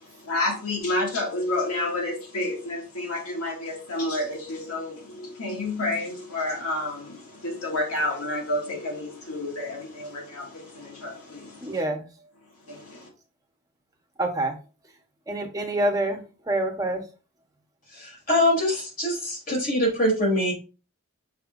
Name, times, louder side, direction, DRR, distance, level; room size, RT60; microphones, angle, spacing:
voice 1, 0.2-11.8 12.7-13.1, left 2 dB, 85° left, 2.4 m, -30 dB
voice 2, 11.6-12.0 14.2-14.5 15.3-17.0, right 1 dB, 15° right, 1.1 m, -26 dB
voice 3, 17.9-20.5, left 1 dB, 40° left, 3.4 m, -24 dB
6.7 x 5.7 x 2.6 m
head